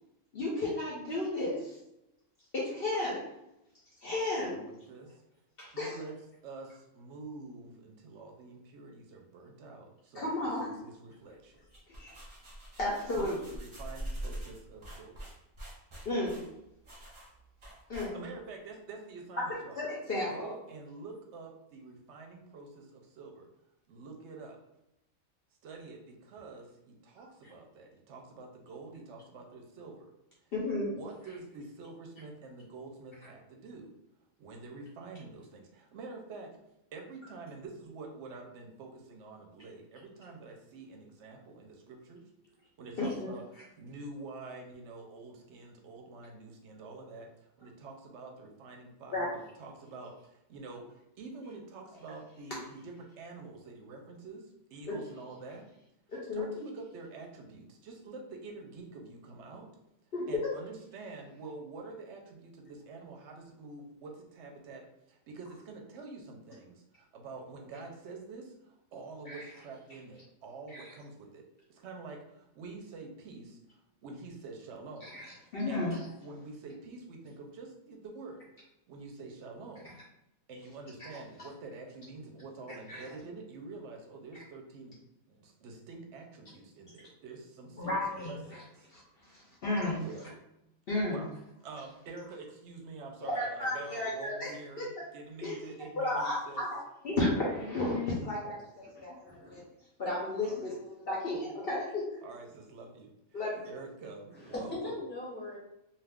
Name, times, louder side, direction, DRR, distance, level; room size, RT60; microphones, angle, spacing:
voice 1, 0.3-1.8 2.5-3.3 4.0-4.7 5.6-6.0 10.1-10.7 11.9-12.2 12.8-13.4 16.0-16.4 17.9-18.2 19.5-20.5 30.5-30.9 43.0-43.3 49.1-49.3 54.9-55.0 56.1-56.5 60.1-60.5 69.3-69.4 70.7-70.9 75.0-76.0 82.9-83.0 87.8-88.3 88.9-90.0 90.9-91.2 93.3-95.0 95.4-95.6 96.0-96.8 97.0-99.6 100.0-102.2 103.3-103.6, left 2 dB, 55° left, -4 dB, 0.7 m, -33 dB
voice 2, 4.4-5.1 5.7-6.1 6.4-11.6 13.1-15.3 18.0-19.8 20.3-23.5 23.9-24.6 25.6-30.1 30.8-33.9 34.4-36.5 36.9-42.2 42.8-43.4 43.8-55.6 56.3-59.7 60.3-71.4 71.7-75.2 75.7-75.9 76.2-78.4 78.9-80.0 80.5-85.0 85.3-88.9 90.0-90.3 91.1-91.3 91.6-96.6 100.4-100.7 102.2-103.4 103.7-105.0, right 3 dB, 65° right, 2 dB, 0.8 m, -47 dB
sound 1, 11.5-18.5, right 1 dB, 30° right, 0.6 m, -44 dB
voice 3, 99.3-99.6 103.5-103.7 104.3-105.6, left 1 dB, 10° left, -5 dB, 0.7 m, -40 dB
2.4 x 2.3 x 3.4 m, 0.87 s
omnidirectional pair, 1.4 m